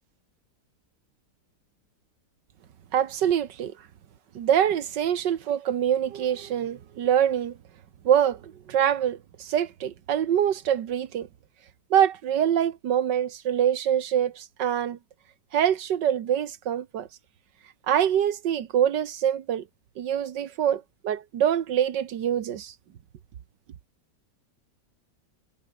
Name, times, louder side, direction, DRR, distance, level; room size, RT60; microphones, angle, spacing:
voice 1, 2.9-3.7 4.4-7.6 8.1-11.3 11.9-15.0 15.5-17.1 17.9-19.6 20.0-22.7, right 9 dB, 90° right, 1.8 m, -25 dB
omnidirectional pair, 1.8 m